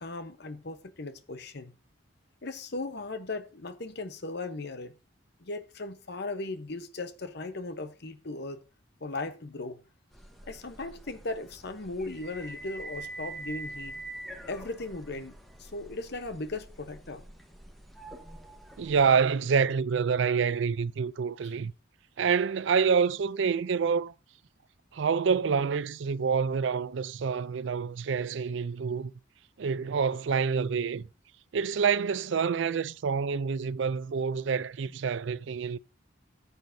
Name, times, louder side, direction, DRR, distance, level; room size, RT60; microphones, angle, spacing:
voice 1, 0.0-1.7 2.4-4.9 5.4-8.6 9.0-9.8 10.5-14.0 14.5-17.2, left 2 dB, 55° left, 0.9 m, -37 dB
sound 1, 10.1-19.1, right 2 dB, ahead, 1.1 m, -45 dB
voice 2, 18.8-21.7 22.2-24.1 24.9-29.1 29.6-31.1 31.5-35.8, right 6 dB, 65° right, 0.4 m, -27 dB
14.5 x 8.2 x 2.7 m
head